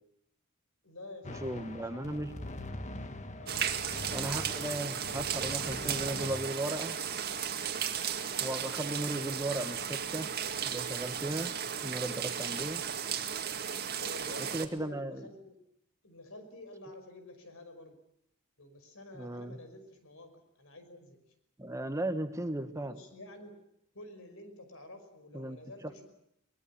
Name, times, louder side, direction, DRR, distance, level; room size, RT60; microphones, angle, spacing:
voice 1, 0.8-2.2 3.4-3.7 14.0-15.5 16.0-18.0 18.6-21.2 22.7-23.5 23.9-26.1, left 1 dB, 65° left, 8 dB, 5.5 m, -49 dB
sound 1, 1.2-6.4, left 2 dB, 35° left, 1.6 m, -43 dB
voice 2, 1.4-2.4 4.1-7.0 8.4-10.3 10.6-11.5 11.8-12.8 14.4-15.2 19.1-19.6 21.6-23.0 25.3-25.6, right 1 dB, 15° right, 9 dB, 1.2 m, -36 dB
sound 2, 3.5-14.7, right 8 dB, 45° right, 2.0 m, -35 dB
23.0 x 21.0 x 8.6 m, 0.76 s
head